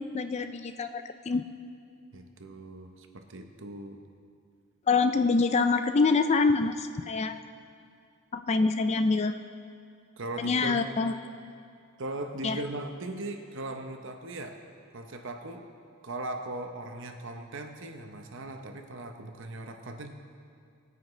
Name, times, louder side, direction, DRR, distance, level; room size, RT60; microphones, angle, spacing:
voice 1, 0.0-1.4 4.9-7.4 8.3-9.4 10.4-11.1 12.4-12.6, left 4 dB, 30° left, 9 dB, 0.3 m, -25 dB
voice 2, 2.1-4.0 10.2-10.9 12.0-14.6 14.9-15.7 16.0-20.1, right 2 dB, 55° right, 5 dB, 0.9 m, -39 dB
19.0 x 9.4 x 3.2 m, 2.4 s
head